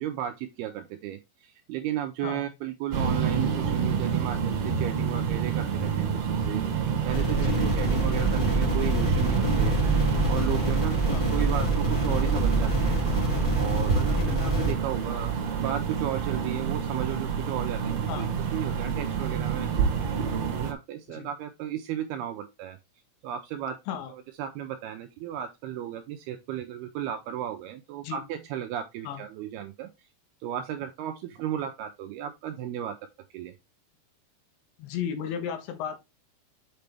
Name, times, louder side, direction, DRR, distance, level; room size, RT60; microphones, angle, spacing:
voice 1, 0.0-13.3 13.6-15.3 15.6-19.7 20.3-22.8 23.2-30.1 30.4-33.0 33.3-33.5, right 11 dB, 85° right, 2.3 m, -34 dB
sound 1, 2.9-20.7, right 6 dB, 60° right, 1.8 m, -28 dB
sound 2, 7.1-14.7, right 1 dB, 25° left, 2.8 m, -26 dB
voice 2, 7.4-7.9 11.1-11.2 14.2-14.4 18.1-18.3 21.1-21.3 23.9-24.1 28.0-28.2 29.0-29.2 34.8-36.0, left 8 dB, 85° left, 3.4 m, -34 dB
6.6 x 5.9 x 3.4 m
omnidirectional pair, 5.1 m